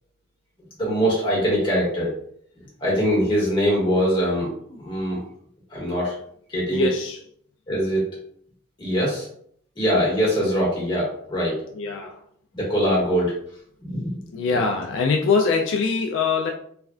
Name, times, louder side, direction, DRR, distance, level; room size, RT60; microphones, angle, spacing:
voice 1, 0.8-2.1 2.8-5.2 5.7-6.1 6.5-6.9 7.7-8.0 8.8-9.3 9.8-11.6 12.5-13.4 13.8-14.2 14.5-14.6, equal, 25° left, -6 dB, 1.2 m, -22 dB
voice 2, 6.7-7.2 11.7-12.2 14.3-16.5, left 4 dB, 70° left, 2 dB, 0.3 m, -23 dB
3.2 x 2.3 x 2.4 m, 0.64 s
head